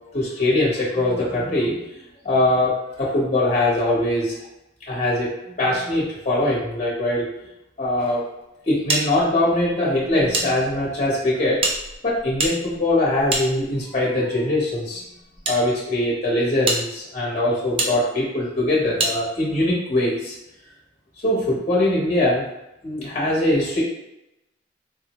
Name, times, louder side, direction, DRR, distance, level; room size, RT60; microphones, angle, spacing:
voice 1, 0.1-1.8 2.2-4.3 4.9-7.2 7.8-8.2 8.7-11.6 12.0-15.0 15.5-20.3 21.2-22.4 22.8-23.8, left 1 dB, 40° left, -6 dB, 1.0 m, -22 dB
sound 1, 8.9-10.5 10.8-10.9 11.6-14.0 14.8-15.6 16.1-16.2 16.6-16.8 17.8-17.9 19.0-19.2, right 2 dB, 30° right, 0.5 m, -26 dB
4.0 x 2.0 x 3.0 m, 0.89 s
head